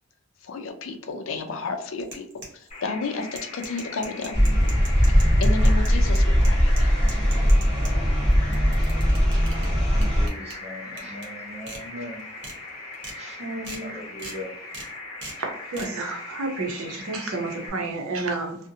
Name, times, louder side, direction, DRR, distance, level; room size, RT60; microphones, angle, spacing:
voice 1, 0.4-2.3 2.5-4.4 5.1-6.9, left 4 dB, 65° left, 0.4 m, -32 dB
sound 1, 2.0-2.8 3.2-7.9 8.3-9.7 10.0-10.5 11.0-11.3 11.7-11.8 12.2-12.5 12.9-13.2 13.6-13.8 14.2-14.4 14.7-14.9 15.2-15.4 15.7-15.9, right 2 dB, 55° right, 0.9 m, -40 dB
sound 2, 2.7-17.7, left 2 dB, 35° left, 0.9 m, -40 dB
sound 3, 4.3-10.3, equal, 5° left, 0.7 m, -20 dB
voice 2, 9.4-13.5 13.8-14.9, left 1 dB, 30° right, 0.6 m, -41 dB
voice 3, 13.4-13.9 15.4-18.6, right 3 dB, 90° right, 0.7 m, -30 dB
2.5 x 2.1 x 2.6 m
head